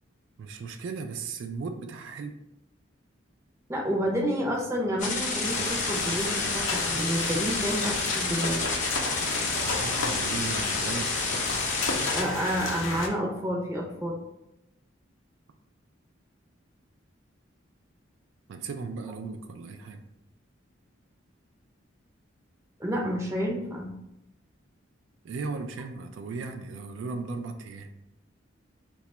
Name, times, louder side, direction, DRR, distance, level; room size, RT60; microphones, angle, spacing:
voice 1, 0.4-2.4 9.6-11.1 18.5-20.0 25.2-27.9, right 4 dB, 75° right, 6 dB, 0.3 m, -36 dB
voice 2, 3.7-8.6 12.1-14.2 22.8-23.9, equal, 15° right, -1 dB, 0.5 m, -29 dB
sound 1, 5.0-12.2, left 3 dB, 40° left, 0.6 m, -30 dB
sound 2, 5.4-13.1, left 3 dB, 90° left, 0.5 m, -33 dB
2.9 x 2.3 x 4.1 m, 0.87 s
head